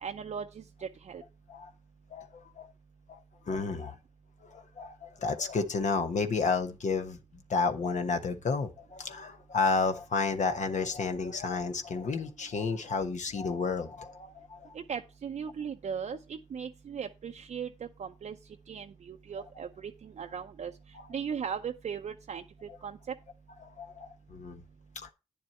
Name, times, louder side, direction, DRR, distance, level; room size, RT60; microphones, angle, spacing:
voice 1, 0.0-1.2 14.7-17.7 18.0-18.4 18.7-20.7 21.1-23.1, right 7 dB, 65° right, 0.6 m, -38 dB
voice 2, 2.1-2.7 3.1-3.2 3.5-3.9 4.5-7.2 7.5-14.7 20.9-21.1 23.8-24.6 25.0-25.1, left 4 dB, 65° left, 1.2 m, -31 dB
9.4 x 7.1 x 4.3 m
supercardioid pair, 45°, 13 cm